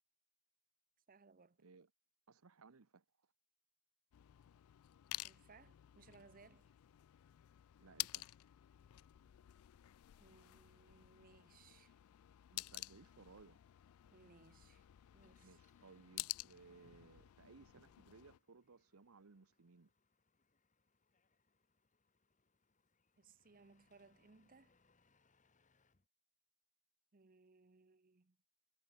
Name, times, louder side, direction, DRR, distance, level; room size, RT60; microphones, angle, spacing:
voice 1, 1.1-1.6 5.2-6.7 10.2-11.9 14.1-14.8 15.1-15.6 23.2-24.7 27.1-28.4, right 4 dB, 40° right, 0.7 m, -65 dB
voice 2, 1.6-1.9 2.3-3.3 7.8-8.3 12.5-13.6 15.4-19.9, right 4 dB, 90° right, 0.9 m, -62 dB
sound 1, 4.1-18.4, left 19 dB, 80° left, 0.3 m, -51 dB
Engine, 14.6-26.1, left 4 dB, 35° left, 1.4 m, -79 dB
head